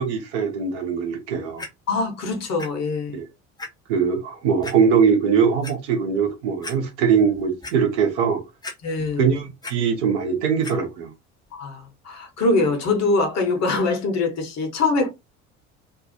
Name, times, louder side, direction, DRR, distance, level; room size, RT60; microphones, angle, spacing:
voice 1, 0.0-1.6 3.1-3.3 3.9-8.4 9.2-11.1, right 6 dB, 65° right, 0.9 m, -21 dB
Clock, 1.6-1.7 2.6-2.7 3.1-3.2 3.6-3.7 4.6-4.8 5.4-5.7 6.3-6.4 6.6-6.8 7.2-7.8 8.6-9.1 9.4-9.7 10.6-10.7 11.5-11.6, left 2 dB, 10° left, 0.7 m, -35 dB
voice 2, 1.9-3.2 8.8-9.3 11.6-15.1, left 3 dB, 45° left, 1.0 m, -23 dB
2.6 x 2.4 x 2.6 m
figure-of-eight pair, 55°, 37 cm